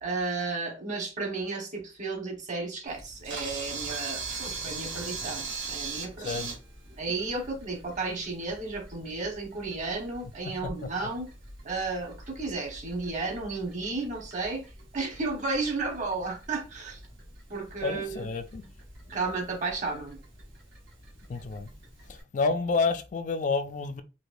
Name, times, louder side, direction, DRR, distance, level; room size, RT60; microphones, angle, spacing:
voice 1, 0.0-6.4 7.0-11.3 11.6-14.6 14.9-17.0 17.5-18.3 19.1-20.2, right 3 dB, 45° right, 1.1 m, -33 dB
Camera, 2.9-22.2, right 4 dB, 80° right, 1.6 m, -42 dB
voice 2, 6.2-6.5 10.6-10.9 17.8-18.6 21.3-21.7 22.1-24.0, left 4 dB, 45° left, 0.3 m, -29 dB
4.7 x 2.2 x 2.5 m
head